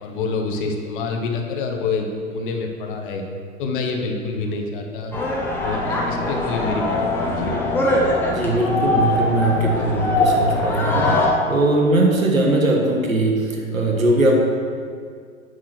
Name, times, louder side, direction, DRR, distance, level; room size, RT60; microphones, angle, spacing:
voice 1, 0.0-3.2 3.6-5.1 5.6-7.6, left 4 dB, 40° left, 2 dB, 1.0 m, -27 dB
sound 1, 5.1-11.3, left 2 dB, 5° left, 0.9 m, -22 dB
voice 2, 8.3-13.4 13.7-14.4, right 1 dB, 80° right, 0 dB, 1.6 m, -20 dB
9.0 x 4.2 x 6.1 m, 2.1 s
figure-of-eight pair, 105°, 41 cm